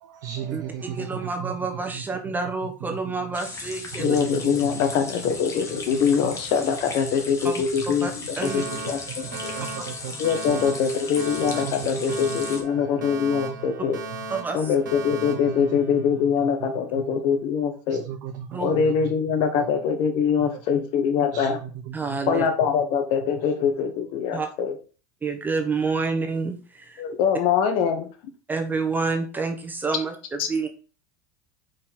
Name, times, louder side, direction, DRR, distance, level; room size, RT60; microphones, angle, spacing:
voice 1, 0.0-1.5 1.9-2.0 2.8-3.1 4.0-4.8 5.7-6.3 8.0-8.8 9.1-10.2 10.5-10.9 11.5-12.4 12.8-12.9 13.3-13.8 14.1-14.2 15.3-16.2 16.4-16.5 17.2-17.3 17.9-19.2 19.6-19.7 21.3-22.3, right 9 dB, 70° right, 4 dB, 0.8 m, -36 dB
voice 2, 0.5-4.2 7.4-7.6 8.0-8.1 8.4-8.6 14.3-14.6 18.5-18.7 21.9-22.5 24.3-24.5 25.2-27.0 28.5-30.7, right 4 dB, 20° right, 4 dB, 1.2 m, -28 dB
sound 1, 3.3-12.6, left 3 dB, 30° left, 1.6 m, -37 dB
voice 3, 4.0-9.5 10.2-14.0 14.5-18.0 18.6-21.6 22.3-24.7 27.0-28.1 30.4-30.5, left 7 dB, 60° left, 7 dB, 1.2 m, -23 dB
Alarm, 8.4-16.4, right 3 dB, 90° right, 1.4 m, -37 dB
5.1 x 4.3 x 4.4 m, 0.38 s
hypercardioid pair, 85°, 10 cm